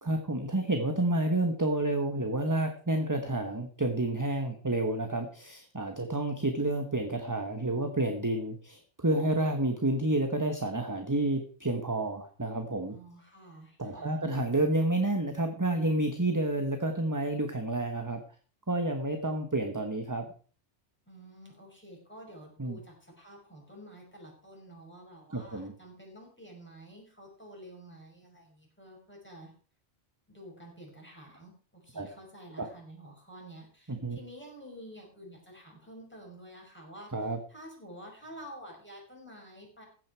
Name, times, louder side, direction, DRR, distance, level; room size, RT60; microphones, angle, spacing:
voice 1, 0.0-12.9 13.8-18.2 18.7-20.3 22.6-22.8 25.3-25.7 31.9-32.1 32.6-32.7 33.9-34.2 37.1-37.4, right 2 dB, 15° right, 5 dB, 1.2 m, -30 dB
voice 2, 12.9-14.2 21.1-29.5 30.3-39.8, equal, 10° left, -1 dB, 5.7 m, -50 dB
15.0 x 9.1 x 4.6 m, 0.40 s
omnidirectional pair, 1.2 m